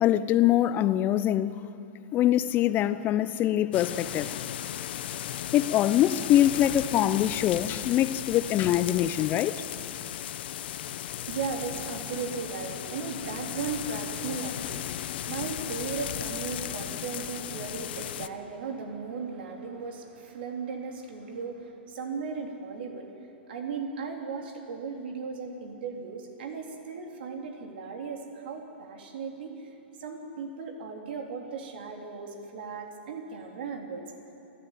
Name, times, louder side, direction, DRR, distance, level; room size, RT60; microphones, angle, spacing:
voice 1, 0.0-1.5 2.1-4.3 5.5-9.5, left 12 dB, 30° left, 0.7 m, -24 dB
sound 1, 3.7-18.3, left 12 dB, 60° left, 0.9 m, -36 dB
voice 2, 10.7-23.1 23.5-29.7 30.0-34.0, right 5 dB, 60° right, 3.5 m, -37 dB
28.0 x 12.5 x 9.2 m
hypercardioid pair, 110°, 6 cm